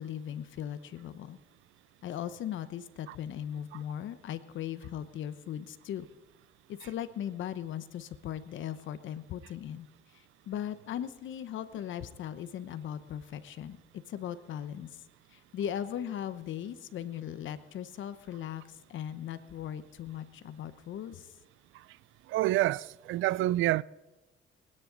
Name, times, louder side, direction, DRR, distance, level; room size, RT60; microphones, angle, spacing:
voice 1, 0.0-1.4 2.0-6.1 6.7-9.9 10.1-13.8 14.1-15.0 15.3-21.3, left 10 dB, 75° left, 1.0 m, -38 dB
voice 2, 22.3-23.8, right 16 dB, 80° right, 0.4 m, -28 dB
28.0 x 9.9 x 4.0 m
cardioid pair, 90°, 20 cm